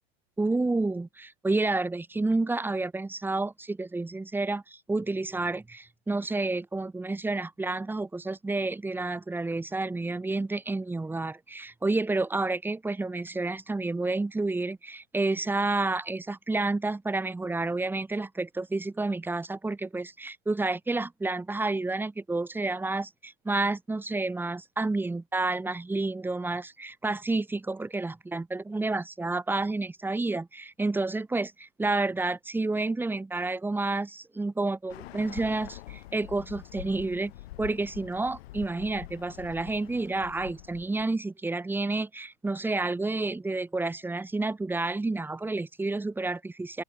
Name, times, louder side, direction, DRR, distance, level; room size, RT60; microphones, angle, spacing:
voice 1, 0.4-37.3 37.6-46.8, right 2 dB, 5° right, 2.4 m, -30 dB
Bird, 34.9-41.0, left 16 dB, 70° left, 7.7 m, -45 dB
open air
supercardioid pair, 150°, 32 cm